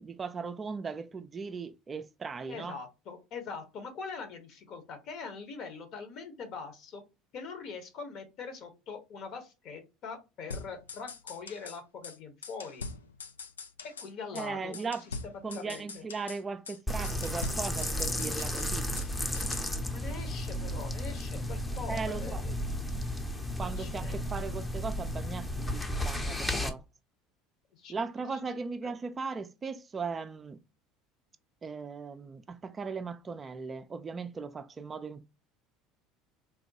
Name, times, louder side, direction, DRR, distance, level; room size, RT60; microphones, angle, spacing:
voice 1, 0.0-2.8 14.3-15.0 15.4-18.9 21.9-22.5 23.6-26.8 27.9-30.6 31.6-35.2, right 5 dB, 30° right, 0.3 m, -38 dB
voice 2, 2.5-7.0 7.3-12.8 13.8-14.7 15.1-16.0 19.8-22.7 23.6-24.2 27.7-27.9 28.3-28.4 28.8-28.9, left 5 dB, 55° left, 1.0 m, -43 dB
sound 1, 10.5-11.8 12.0-12.2 12.4-14.1 14.4-14.5 14.7-16.4 16.7-16.8 17.0-19.1 19.3-19.7, left 4 dB, 85° left, 0.3 m, -43 dB
sound 2, 16.9-26.7, left 1 dB, 15° left, 0.6 m, -33 dB
3.5 x 2.1 x 2.7 m
hypercardioid pair, 70°, 0 cm